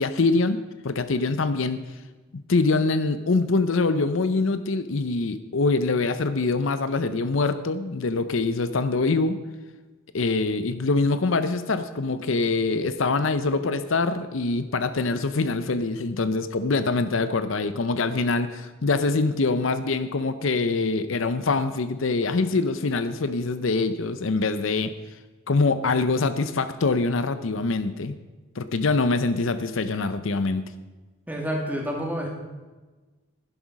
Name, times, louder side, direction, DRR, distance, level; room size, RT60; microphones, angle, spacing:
voice 1, 0.0-1.8 2.3-9.4 10.1-24.9 25.5-28.2 28.6-30.7, left 3 dB, 65° left, 12 dB, 0.6 m, -24 dB
voice 2, 31.3-32.3, equal, 10° right, 0 dB, 2.3 m, -28 dB
11.0 x 11.0 x 5.3 m, 1.2 s
head